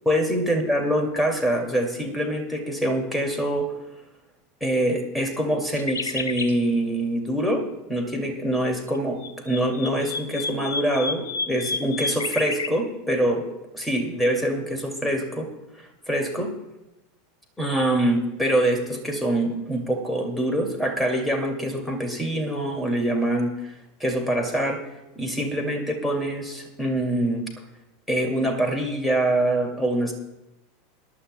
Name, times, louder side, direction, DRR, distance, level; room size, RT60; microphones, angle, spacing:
voice 1, 0.1-3.7 4.6-7.6 7.9-13.5 13.7-15.5 16.1-16.5 17.6-23.7 24.0-24.8 25.2-27.4 28.1-30.1, right 1 dB, 5° left, 3 dB, 2.3 m, -24 dB
sound 1, 5.8-6.6 8.9-12.7, left 4 dB, 70° left, 0.9 m, -31 dB
22.0 x 11.5 x 2.2 m, 0.93 s
figure-of-eight pair, 80°, 0 cm